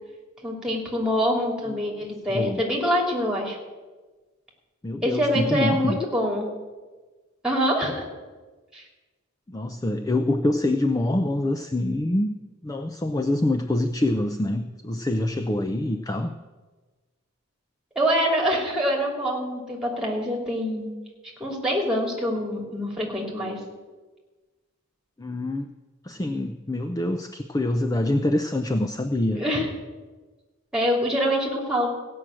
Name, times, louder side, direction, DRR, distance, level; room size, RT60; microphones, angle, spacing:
voice 1, 0.4-3.6 5.0-6.5 7.4-8.1 8.7-8.8 17.9-20.9 21.4-23.6 29.3-29.7 30.7-31.9, equal, 5° right, -1 dB, 2.7 m, -25 dB
voice 2, 2.3-2.6 4.8-6.0 9.5-12.3 12.6-16.3 25.2-25.7 26.0-29.4, left 1 dB, 15° left, 8 dB, 0.4 m, -25 dB
16.0 x 6.2 x 8.8 m, 1.3 s
head